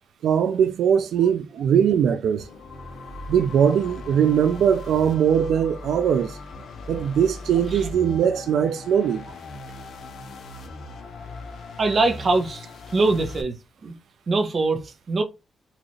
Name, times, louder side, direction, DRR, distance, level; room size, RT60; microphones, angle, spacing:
voice 1, 0.2-2.5 3.3-6.4 6.9-9.2, right 8 dB, 85° right, 0.3 m, -21 dB
sound 1, 2.4-13.4, left 2 dB, 70° left, 0.8 m, -39 dB
voice 2, 11.8-12.6 12.9-13.6 13.8-13.9 14.3-15.2, right 3 dB, 35° right, 0.6 m, -22 dB
4.1 x 2.4 x 3.0 m
wide cardioid pair, 160°, 0 cm